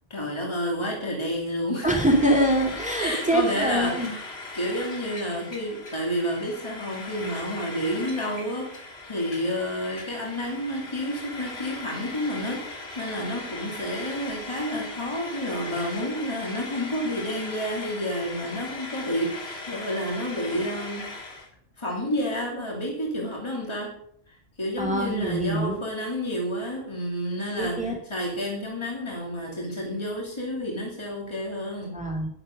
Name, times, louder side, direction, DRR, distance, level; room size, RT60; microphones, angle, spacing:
voice 1, 0.1-1.9 3.0-21.1 21.8-23.9 24.3-31.9, equal, 25° left, -1 dB, 2.7 m, -30 dB
Frying (food), 1.8-21.5, left 3 dB, 75° left, 2.2 m, -39 dB
voice 2, 1.8-4.1 24.8-25.8 27.6-28.0 31.9-32.3, right 1 dB, 5° right, 1 dB, 2.6 m, -24 dB
11.0 x 10.5 x 6.5 m, 0.69 s
omnidirectional pair, 1.1 m